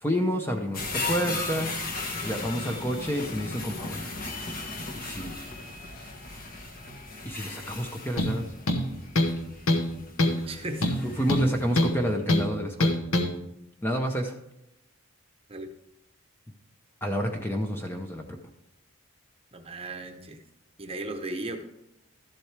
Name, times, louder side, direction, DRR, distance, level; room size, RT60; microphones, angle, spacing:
voice 1, 0.0-1.7 2.2-4.1 5.0-5.3 7.2-8.5 9.2-9.3 11.0-13.0 13.8-14.3 17.0-18.2, equal, 10° left, 3 dB, 0.6 m, -29 dB
sound 1, 0.7-12.0 12.4-12.5, left 3 dB, 40° left, 1.2 m, -37 dB
sound 2, 8.2-8.4 8.7-9.4 9.7-9.9 10.2-10.4 10.8-12.0 12.3-12.5 12.8-13.3, left 1 dB, 65° left, 1.1 m, -24 dB
voice 2, 10.2-10.8 15.5-15.7 19.5-20.4 20.8-21.6, right 2 dB, 25° right, 5 dB, 0.8 m, -36 dB
13.0 x 7.6 x 3.3 m, 0.86 s
head